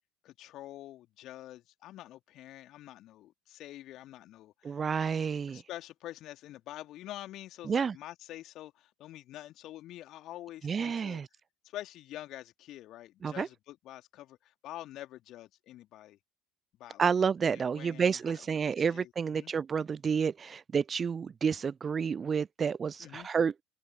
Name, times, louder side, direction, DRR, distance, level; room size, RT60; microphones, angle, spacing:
voice 1, 0.2-4.8 5.5-11.2 11.6-16.2 16.8-17.1 17.4-19.5 23.0-23.3, left 14 dB, 50° left, 2.8 m, -47 dB
voice 2, 4.6-5.6 7.6-8.0 10.6-11.3 13.2-13.5 17.0-23.5, right 6 dB, 30° right, 0.4 m, -30 dB
open air
figure-of-eight pair, 65°, 0 cm